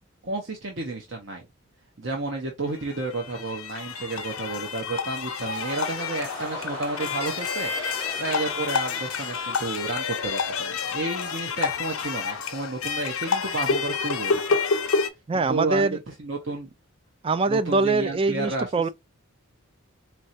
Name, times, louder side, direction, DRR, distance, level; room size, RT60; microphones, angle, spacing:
voice 1, 0.2-1.4 2.0-7.7 8.2-14.6 15.3-16.7 17.5-18.9, right 2 dB, 60° right, 0.9 m, -31 dB
sound 1, 2.8-15.1, left 5 dB, 85° left, 0.7 m, -29 dB
sound 2, 5.2-11.6 11.9-12.4, equal, 85° right, 3.0 m, -40 dB
voice 2, 15.3-16.0 17.2-18.9, right 3 dB, 25° right, 0.3 m, -23 dB
4.4 x 3.2 x 2.6 m
head